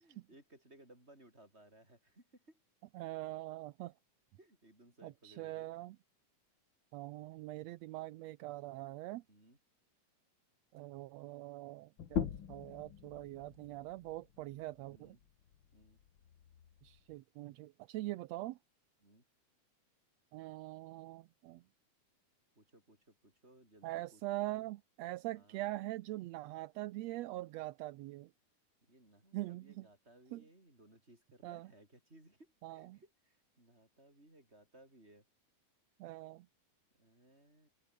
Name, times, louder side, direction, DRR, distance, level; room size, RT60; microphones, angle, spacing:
voice 1, 0.0-2.6 4.4-5.7 9.3-9.6 14.9-15.2 15.7-16.0 19.0-19.2 22.5-24.7 25.3-25.6 28.8-35.2 36.9-37.7, right 1 dB, 20° right, 8.3 m, -62 dB
voice 2, 2.9-3.9 5.0-6.0 6.9-9.2 10.7-15.2 16.8-18.6 20.3-21.6 23.8-28.3 29.3-29.9 30.3-30.4 31.4-31.7 32.6-33.0 36.0-36.5, right 17 dB, 75° right, 1.7 m, -43 dB
sound 1, 12.0-17.2, left 8 dB, 50° left, 1.9 m, -43 dB
omnidirectional pair, 3.4 m